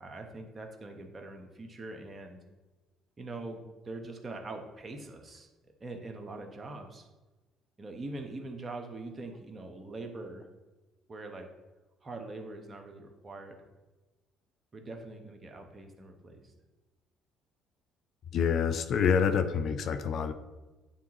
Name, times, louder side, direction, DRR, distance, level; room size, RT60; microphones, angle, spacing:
voice 1, 0.0-2.4 3.2-5.5 5.8-7.1 7.8-10.5 11.1-11.5 12.0-13.6 14.7-16.5, right 2 dB, 35° right, 4 dB, 1.2 m, -43 dB
voice 2, 18.3-20.3, left 6 dB, 60° left, 9 dB, 0.5 m, -27 dB
10.0 x 3.6 x 3.0 m, 1.2 s
hypercardioid pair, 55°, 0 cm